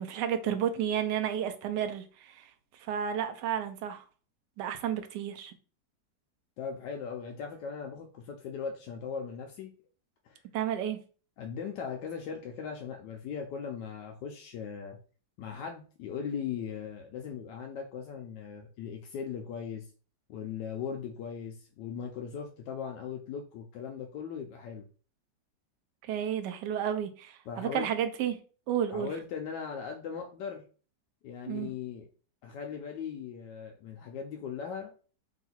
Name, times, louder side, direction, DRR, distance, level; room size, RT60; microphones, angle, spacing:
voice 1, 0.0-4.0 4.6-5.5 10.5-11.0 26.0-28.4 28.7-29.1 31.5-31.7, right 9 dB, 80° right, 1.2 m, -32 dB
voice 2, 6.6-9.7 10.2-10.4 11.4-15.0 15.4-19.9 20.3-24.9 27.5-27.9 28.9-30.6 31.2-32.1 32.4-34.9, left 7 dB, 85° left, 1.3 m, -39 dB
3.8 x 2.4 x 4.2 m
omnidirectional pair, 1.9 m